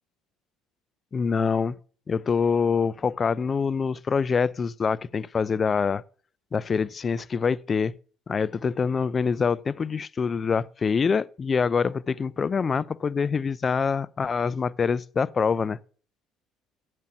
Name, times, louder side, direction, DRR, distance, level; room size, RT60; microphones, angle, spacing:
voice 1, 1.1-1.8 2.1-6.0 6.5-7.9 8.3-15.8, left 5 dB, 35° left, 0.4 m, -25 dB
7.7 x 7.5 x 5.6 m
supercardioid pair, 85°, 0 cm